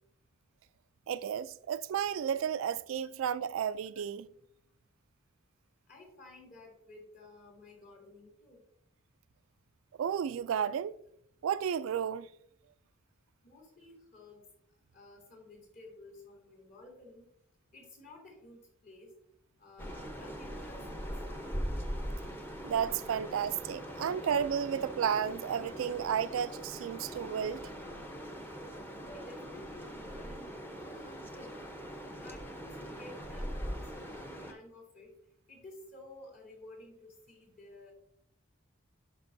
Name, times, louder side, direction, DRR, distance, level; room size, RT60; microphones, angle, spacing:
voice 1, 1.1-4.3 10.0-11.0 11.4-12.3 22.6-27.6, right 8 dB, 80° right, 0.3 m, -32 dB
voice 2, 5.9-8.6 13.4-14.4 14.9-17.3 17.7-19.1 19.6-21.7 23.1-23.2 29.1-30.5 30.9-31.6 32.1-35.1 35.5-37.9, left 2 dB, 50° left, 3.1 m, -53 dB
sound 1, 19.8-34.5, equal, 10° left, 0.7 m, -41 dB
11.0 x 5.2 x 2.6 m
head